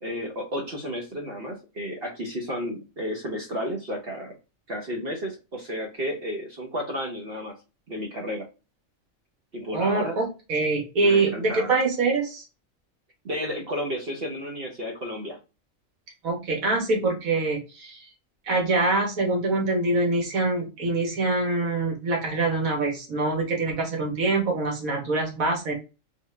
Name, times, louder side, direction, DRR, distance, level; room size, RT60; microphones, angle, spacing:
voice 1, 0.0-4.3 4.7-7.5 7.9-8.5 9.5-10.2 11.0-11.8 13.2-15.4, equal, 50° right, 1 dB, 1.0 m, -32 dB
voice 2, 9.7-12.4 16.2-18.0 18.5-25.7, right 3 dB, 80° right, 0 dB, 1.6 m, -24 dB
3.7 x 2.4 x 3.2 m, 0.29 s
omnidirectional pair, 1.4 m